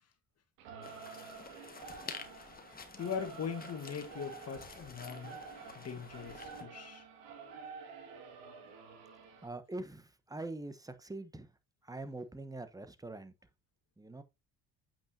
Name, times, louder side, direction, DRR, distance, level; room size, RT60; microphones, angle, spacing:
Singing / Musical instrument, 0.6-9.5, right 5 dB, 85° right, 2.1 m, -50 dB
voice 1, 0.8-1.3 2.4-2.5 3.0-5.4 5.7-7.0, left 7 dB, 45° left, 1.6 m, -41 dB
sound 1, 0.8-6.6, left 4 dB, 25° left, 1.5 m, -50 dB
voice 2, 9.4-11.5 11.8-13.3 14.0-14.2, right 2 dB, 10° right, 1.1 m, -43 dB
8.4 x 6.0 x 2.7 m
supercardioid pair, 85°, 34 cm